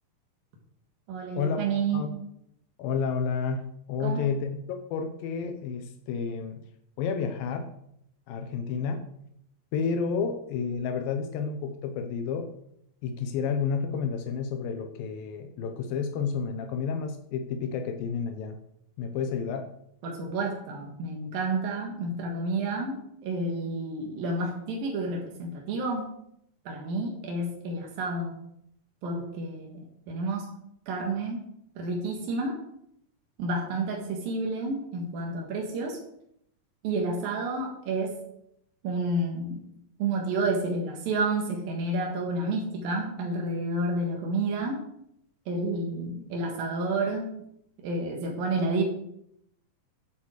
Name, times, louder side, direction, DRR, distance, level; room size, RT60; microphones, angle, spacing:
voice 1, 1.1-2.0 4.0-4.3 20.0-26.1 26.7-28.3 29.0-30.5 30.9-31.5 31.8-32.6 33.4-36.0 36.8-38.2 38.8-39.6 40.0-44.8 45.5-47.3 47.8-48.8, right 2 dB, 85° right, 0 dB, 3.5 m, -30 dB
voice 2, 2.8-3.6 3.9-6.6 7.0-7.7 8.3-9.0 9.7-12.5 13.0-18.6 19.0-19.7, left 6 dB, 85° left, 6 dB, 2.6 m, -30 dB
10.5 x 7.3 x 6.4 m, 0.75 s
omnidirectional pair, 4.0 m